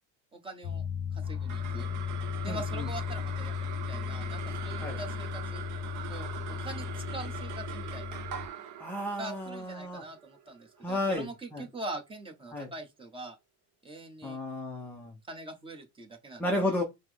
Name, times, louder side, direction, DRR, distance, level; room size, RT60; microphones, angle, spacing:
voice 1, 0.3-0.8 1.1-1.9 2.4-5.6 6.1-8.2 9.2-13.4 13.8-14.4 15.3-16.8, right 2 dB, 15° right, 0.8 m, -43 dB
sound 1, 0.6-8.5, left 7 dB, 45° left, 0.7 m, -36 dB
sound 2, 1.2-11.8, right 9 dB, 50° right, 0.8 m, -43 dB
voice 2, 2.5-2.9 4.8-5.0 8.8-10.0 10.8-11.6 12.5-12.7 14.2-15.1 16.4-16.8, left 1 dB, 5° left, 0.4 m, -33 dB
5.5 x 2.0 x 3.2 m
cardioid pair, 145°, 39 cm